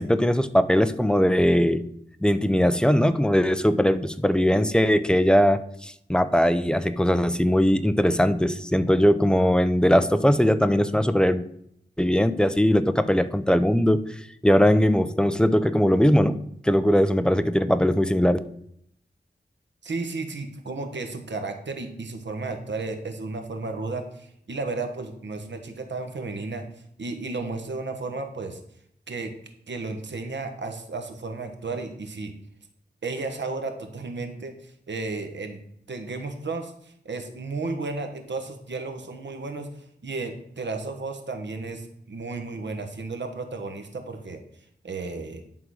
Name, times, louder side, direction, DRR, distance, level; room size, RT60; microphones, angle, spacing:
voice 1, 0.0-1.8 2.2-11.4 12.0-14.0 14.4-16.4 16.6-18.4, equal, 5° left, 11 dB, 0.6 m, -20 dB
voice 2, 19.8-26.6 27.0-28.6 29.1-29.3 29.7-32.3 33.0-35.6 35.9-39.7 40.0-44.4 44.8-45.4, right 3 dB, 90° right, 6 dB, 1.2 m, -33 dB
10.5 x 3.8 x 6.3 m, 0.71 s
wide cardioid pair, 80°, 18 cm